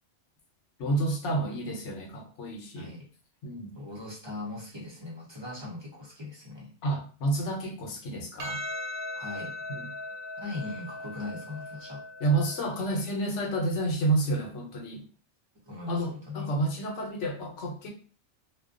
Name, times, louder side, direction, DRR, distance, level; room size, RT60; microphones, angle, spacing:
voice 1, 0.8-2.9 3.4-3.8 6.8-8.6 9.7-9.9 12.2-15.0 15.9-17.9, right 2 dB, 85° left, 2 dB, 1.0 m, -30 dB
voice 2, 2.8-3.1 3.7-6.7 9.2-9.6 10.4-12.0 15.7-16.5, left 2 dB, 30° right, -4 dB, 0.6 m, -39 dB
Percussion, 8.4-13.0, left 2 dB, 75° right, 1.0 m, -39 dB
2.4 x 2.2 x 2.4 m, 0.39 s
omnidirectional pair, 1.2 m